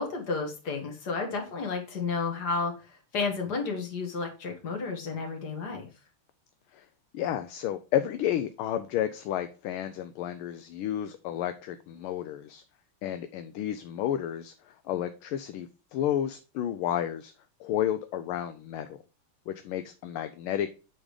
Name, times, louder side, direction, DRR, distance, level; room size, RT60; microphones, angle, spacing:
voice 1, 0.0-2.7 3.1-5.9, left 4 dB, 50° left, 2 dB, 2.2 m, -31 dB
voice 2, 7.1-12.6 13.0-17.3 17.6-19.0 19.5-20.7, left 11 dB, 80° left, 9 dB, 1.4 m, -31 dB
8.5 x 3.7 x 4.9 m, 0.33 s
omnidirectional pair, 2.4 m